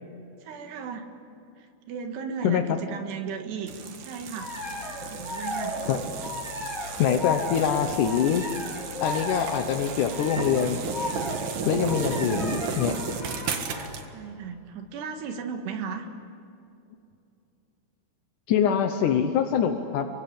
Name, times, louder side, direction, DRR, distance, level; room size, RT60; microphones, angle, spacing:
voice 1, 0.4-1.1 1.6-5.8 11.7-12.8 14.1-16.1, right 6 dB, 90° right, 5 dB, 3.9 m, -36 dB
sound 1, 3.7-14.1, right 6 dB, 60° right, 3.0 m, -34 dB
sound 2, 4.4-14.0, left 2 dB, 20° left, 4.3 m, -35 dB
voice 2, 7.0-8.5 9.0-10.8 11.7-13.0 18.5-20.1, left 8 dB, 65° left, 5 dB, 2.2 m, -24 dB
27.0 x 24.0 x 8.8 m, 2.7 s
omnidirectional pair, 4.7 m